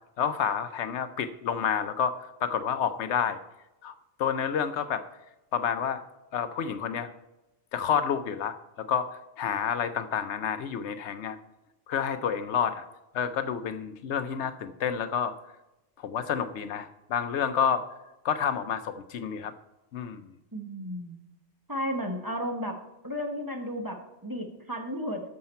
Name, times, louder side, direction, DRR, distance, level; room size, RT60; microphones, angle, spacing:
voice 1, 0.2-3.4 3.8-3.9 4.2-5.0 5.5-6.0 6.3-7.1 7.7-11.4 11.9-12.8 13.1-15.3 16.0-17.8 18.2-19.5 19.9-20.3, left 7 dB, 75° left, 10 dB, 0.9 m, -29 dB
voice 2, 20.5-21.1 21.7-22.8 23.0-25.3, equal, 20° right, 2 dB, 1.1 m, -33 dB
11.5 x 6.7 x 4.3 m, 0.96 s
omnidirectional pair, 1.2 m